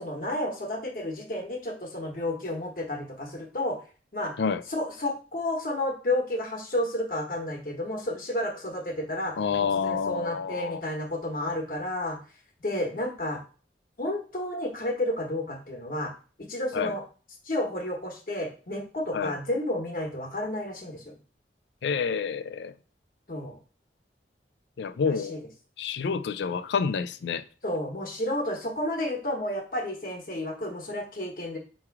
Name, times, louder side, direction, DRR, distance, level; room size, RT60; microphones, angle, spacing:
voice 1, 0.0-3.8 4.1-4.3 4.7-9.4 9.7-12.2 12.6-13.4 14.0-16.1 16.5-17.0 17.4-21.1 23.3-23.6 25.0-25.4 27.6-31.6, left 1 dB, 50° left, 1.2 m, -31 dB
voice 2, 9.4-10.8 16.7-16.9 19.1-19.3 21.8-22.7 24.8-25.4 25.8-27.4, left 6 dB, 80° left, 0.4 m, -28 dB
3.5 x 3.2 x 4.7 m
head